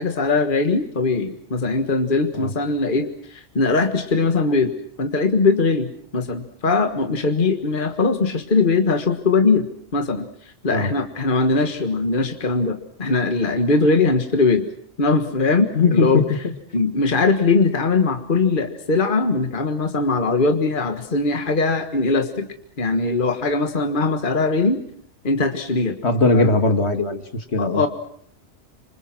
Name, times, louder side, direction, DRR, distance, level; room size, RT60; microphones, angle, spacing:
voice 1, 0.0-9.7 9.9-10.3 10.6-14.7 15.0-16.2 16.7-22.5 22.8-24.8 25.2-26.0 26.3-26.5 27.6-27.9, left 3 dB, 45° left, 7 dB, 1.7 m, -20 dB
voice 2, 15.7-16.2 26.0-27.2 27.5-27.8, left 3 dB, 65° left, 8 dB, 2.2 m, -18 dB
27.0 x 26.0 x 6.0 m, 0.63 s
omnidirectional pair, 1.2 m